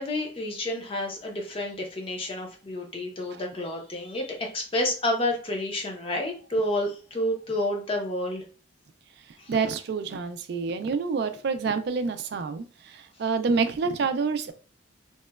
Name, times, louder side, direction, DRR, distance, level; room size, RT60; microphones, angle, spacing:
voice 1, 0.0-8.4 9.4-9.5, left 1 dB, 30° left, 1 dB, 0.6 m, -30 dB
voice 2, 9.5-14.5, right 5 dB, 55° right, 10 dB, 0.3 m, -27 dB
2.9 x 2.1 x 2.2 m, 0.37 s
head